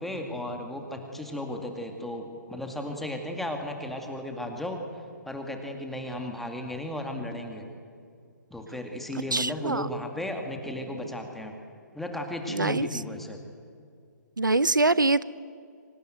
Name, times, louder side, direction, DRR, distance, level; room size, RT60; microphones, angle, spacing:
voice 1, 0.0-4.8 5.2-7.6 8.5-11.5 11.9-13.4, left 1 dB, ahead, 3 dB, 2.2 m, -35 dB
voice 2, 9.3-9.9 12.5-12.9 14.4-15.2, right 3 dB, 85° right, 18 dB, 0.7 m, -24 dB
25.0 x 19.0 x 9.3 m, 2.3 s
figure-of-eight pair, 135°, 10 cm